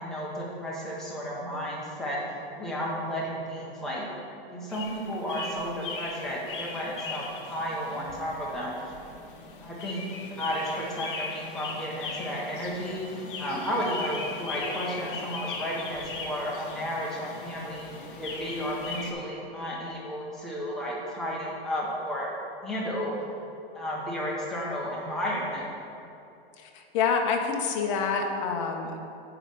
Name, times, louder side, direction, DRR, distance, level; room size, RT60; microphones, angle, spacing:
voice 1, 0.0-2.2 2.6-4.1 4.5-8.9 9.3-10.0 10.4-22.4 22.6-23.1 23.7-25.6, equal, ahead, -7 dB, 0.9 m, -33 dB
sound 1, 4.7-19.1, left 4 dB, 55° left, 1.1 m, -39 dB
voice 2, 26.6-29.0, left 5 dB, 30° left, 3 dB, 0.7 m, -27 dB
9.6 x 3.3 x 6.5 m, 2.8 s
hypercardioid pair, 165°, 32 cm